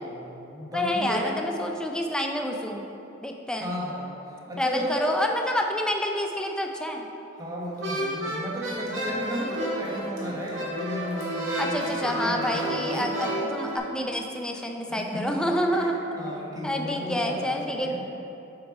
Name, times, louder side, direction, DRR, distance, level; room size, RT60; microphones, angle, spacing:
voice 1, 0.0-1.3 3.6-4.2 4.5-5.1 7.4-13.1 14.9-15.9 16.1-18.0, equal, 20° right, -4 dB, 1.3 m, -34 dB
voice 2, 0.7-2.8 3.2-3.7 4.6-7.1 9.0-9.5 11.6-15.9 16.6-18.0, left 1 dB, 5° left, 2 dB, 0.5 m, -28 dB
sound 1, 7.8-13.8, right 1 dB, 75° right, 1.8 m, -31 dB
7.7 x 5.4 x 4.9 m, 3.0 s
head